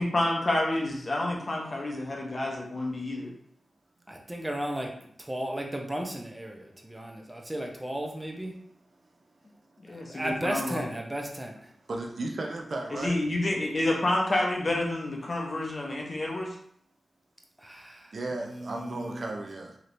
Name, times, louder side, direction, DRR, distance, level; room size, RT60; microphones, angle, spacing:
voice 1, 0.0-3.3 9.9-10.8 12.9-16.6, left 1 dB, 45° left, -1 dB, 0.6 m, -29 dB
voice 2, 4.1-8.5 9.9-11.7 17.6-19.3, right 1 dB, 15° right, 1 dB, 0.6 m, -35 dB
voice 3, 11.9-13.2 18.1-19.8, right 2 dB, 65° right, 2 dB, 0.4 m, -34 dB
3.1 x 2.8 x 2.6 m, 0.66 s
cardioid pair, 55°, 0 cm